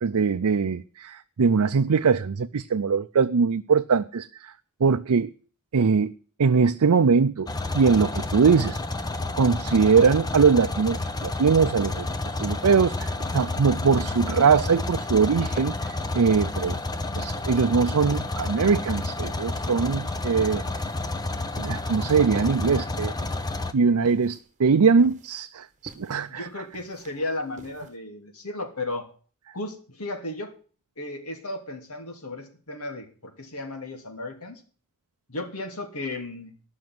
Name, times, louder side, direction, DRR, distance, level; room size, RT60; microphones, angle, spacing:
voice 1, 0.0-4.5 4.8-5.3 5.7-6.1 6.4-7.5 7.7-8.8 9.4-12.1 12.4-16.8 17.2-20.6 21.6-23.1 23.7-26.5, right 5 dB, 85° right, 0.5 m, -22 dB
sound 1, 7.5-23.7, left 2 dB, 20° left, 0.8 m, -30 dB
sound 2, 11.7-28.0, right 2 dB, 35° right, 1.3 m, -47 dB
voice 2, 26.0-29.0 29.5-30.5 31.0-34.6 35.3-36.5, left 2 dB, 75° left, 2.8 m, -35 dB
12.5 x 6.2 x 9.4 m
head